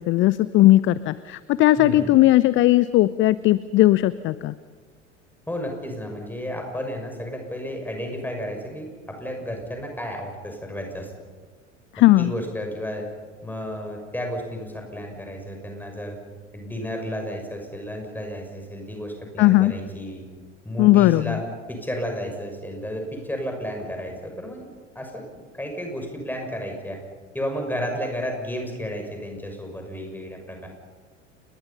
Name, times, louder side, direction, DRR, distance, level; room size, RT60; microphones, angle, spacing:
voice 1, 0.0-4.5 11.9-12.3 19.4-19.7 20.8-21.4, left 16 dB, 35° left, 17 dB, 0.6 m, -17 dB
voice 2, 1.8-2.2 5.5-11.1 12.2-13.1 13.4-16.2 16.5-20.3 20.6-21.4 21.7-24.7 24.9-27.0 27.3-30.7, equal, 5° left, 3 dB, 6.1 m, -32 dB
29.5 x 21.0 x 5.6 m, 1.5 s
figure-of-eight pair, 75°, 37 cm